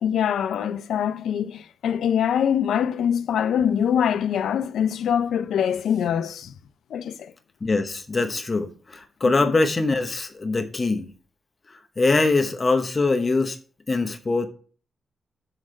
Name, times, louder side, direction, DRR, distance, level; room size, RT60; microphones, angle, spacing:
voice 1, 0.0-6.5 6.9-7.3 9.2-9.5, left 8 dB, 85° left, 0.4 m, -24 dB
voice 2, 7.6-11.1 12.0-13.6 13.9-14.5, left 3 dB, 30° left, 0.9 m, -23 dB
6.3 x 4.9 x 6.2 m
wide cardioid pair, 125°, 0 cm